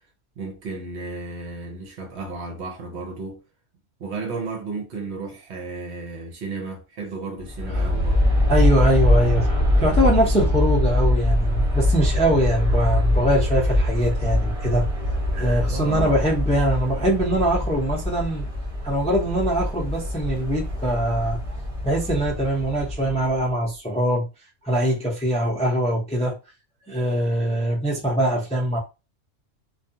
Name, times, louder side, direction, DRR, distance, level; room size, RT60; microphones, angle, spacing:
voice 1, 0.4-3.4 4.0-8.3 15.6-16.2, right 3 dB, 65° right, 1.0 m, -33 dB
Aircraft, 7.4-23.5, left 1 dB, 30° right, 0.9 m, -23 dB
voice 2, 8.5-14.9 15.3-18.4 18.8-21.4 21.8-24.3 24.6-26.3 26.9-28.8, right 1 dB, 10° left, 0.4 m, -22 dB
2.4 x 2.3 x 2.6 m
omnidirectional pair, 1.3 m